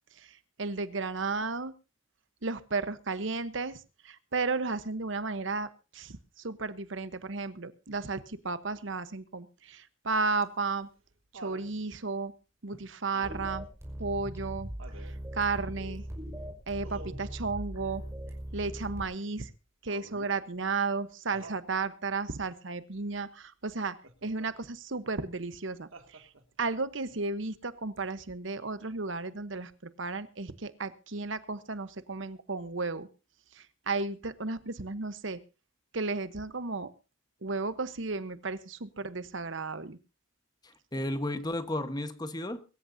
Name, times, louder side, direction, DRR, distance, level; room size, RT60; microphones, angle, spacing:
voice 1, 0.2-1.7 2.4-10.9 11.3-12.3 12.6-13.7 14.0-14.7 15.0-16.0 16.7-18.0 18.5-19.5 19.8-24.0 24.2-26.3 26.6-33.1 33.5-35.4 35.9-36.9 37.4-40.0, right 4 dB, 70° right, 13 dB, 1.0 m, -34 dB
Laughter, 10.4-11.7 13.1-13.6 14.8-15.2 16.8-17.4 19.9-20.4 21.3-21.7 24.0-24.5 25.9-26.6 28.0-28.1, right 2 dB, 90° right, 2.4 m, -49 dB
sound 1, 13.2-19.0, equal, 15° right, 5.5 m, -40 dB
voice 2, 40.6-42.6, left 1 dB, 20° left, 10 dB, 1.3 m, -33 dB
23.0 x 14.0 x 2.7 m, 0.32 s
head